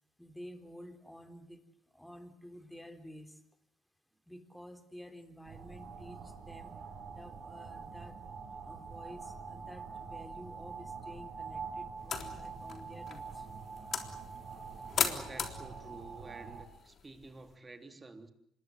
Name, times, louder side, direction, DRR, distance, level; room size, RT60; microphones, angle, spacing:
voice 1, 0.2-1.6 1.9-3.4 4.3-6.7 7.1-8.2 8.6-13.5, equal, 5° left, 3.9 m, -51 dB
sound 1, 5.4-16.6, right 5 dB, 55° right, 6.0 m, -45 dB
sound 2, 12.0-17.5, left 6 dB, 50° left, 3.6 m, -39 dB
voice 2, 15.0-18.3, right 3 dB, 25° right, 3.4 m, -50 dB
26.0 x 21.5 x 7.6 m
supercardioid pair, 65°, 0 cm